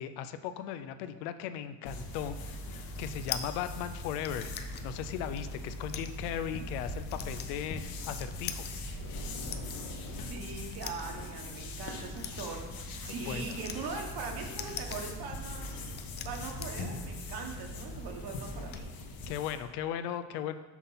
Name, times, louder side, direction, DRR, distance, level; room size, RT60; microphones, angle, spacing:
voice 1, 0.0-2.4 3.0-4.5 4.8-7.8 8.1-8.7 13.3-13.6 19.3-20.6, left 9 dB, 70° left, 11 dB, 0.6 m, -37 dB
sound 1, 1.9-19.7, left 1 dB, 45° left, 1.2 m, -41 dB
sound 2, 2.6-18.8, left 8 dB, 25° left, 0.3 m, -46 dB
voice 2, 10.3-12.6 13.0-15.8 16.2-18.9, right 4 dB, 50° right, 2 dB, 1.5 m, -41 dB
6.1 x 3.9 x 5.7 m, 1.1 s
supercardioid pair, 100°, 48 cm